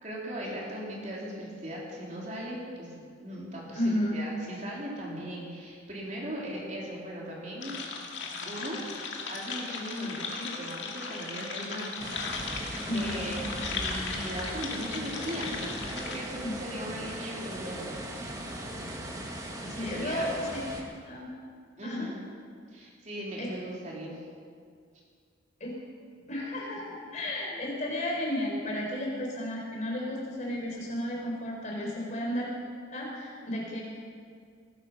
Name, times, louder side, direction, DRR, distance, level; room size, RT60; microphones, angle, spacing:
voice 1, 0.0-7.8 8.4-8.8 9.3-12.0 12.4-13.4 13.6-18.1 19.8-20.3 21.8-22.2 22.7-24.2 31.8-32.1, equal, 35° right, -4 dB, 3.7 m, -38 dB
voice 2, 3.7-4.2 12.8-13.3 16.4-16.6 19.6-21.3 21.8-22.1 23.4-23.5 25.6-25.7 26.3-32.5 32.9-33.8, left 1 dB, 35° left, -2 dB, 4.2 m, -33 dB
sound 1, 7.6-16.2, left 4 dB, 65° left, 2.1 m, -37 dB
sound 2, 12.0-20.8, right 1 dB, 15° right, 1.6 m, -39 dB
20.0 x 12.0 x 5.6 m, 2.1 s
head